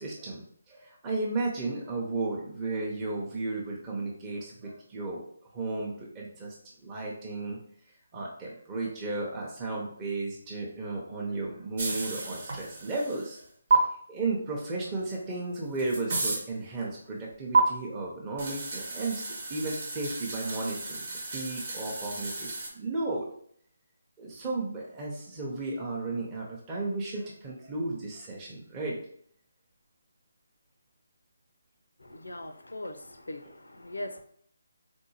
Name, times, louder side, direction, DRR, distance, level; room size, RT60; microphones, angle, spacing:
voice 1, 0.0-5.2 5.5-6.5 6.8-7.6 8.1-13.4 13.7-13.8 14.1-22.5 22.7-23.3 24.2-29.0 33.4-33.5, right 3 dB, 20° right, -4 dB, 0.6 m, -34 dB
sound 1, 11.8-13.4 13.7-13.8 15.1-15.2 15.5-16.4 17.5-17.6 18.4-22.7, right 4 dB, 50° right, 1.0 m, -31 dB
voice 2, 32.1-33.0 33.3-33.4 33.8-34.2, left 1 dB, 85° left, 7 dB, 0.4 m, -38 dB
3.7 x 2.6 x 2.7 m, 0.63 s
figure-of-eight pair, 155°, 0 cm